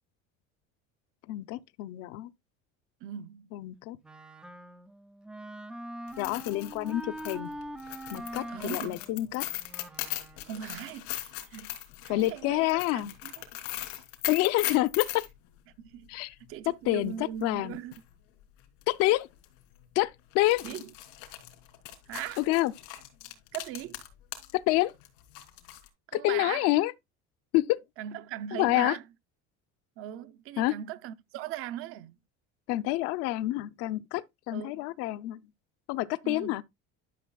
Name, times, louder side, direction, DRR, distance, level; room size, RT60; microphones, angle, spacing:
voice 1, 1.3-2.3 3.5-4.0 6.2-7.5 8.1-9.4 12.1-13.1 14.3-15.3 16.1-16.3 16.9-17.1 17.4-17.7 18.9-19.3 20.0-20.6 22.4-22.7 24.7-24.9 26.2-26.9 27.5-27.8 28.6-29.0 30.6-30.7 32.7-34.2 34.5-35.4 35.9-36.6, left 17 dB, 55° left, 0.6 m, -27 dB
voice 2, 3.0-3.5 8.5-9.0 10.4-11.7 12.0-13.4 15.8-17.9 20.6-20.9 22.1-22.4 23.5-24.0 26.1-26.7 28.0-29.0 30.0-32.2 34.5-34.9 36.2-36.6, right 11 dB, 45° right, 0.7 m, -39 dB
Wind instrument woodwind instrument, 4.0-10.6, right 1 dB, 5° right, 0.3 m, -43 dB
sound 1, 6.1-15.3 17.4-17.5 17.9-18.0 18.8-19.0 19.3-19.4 20.3-24.5 24.8-25.9, left 16 dB, 90° left, 2.7 m, -39 dB
12.0 x 6.5 x 2.3 m
cardioid pair, 180°, 30 cm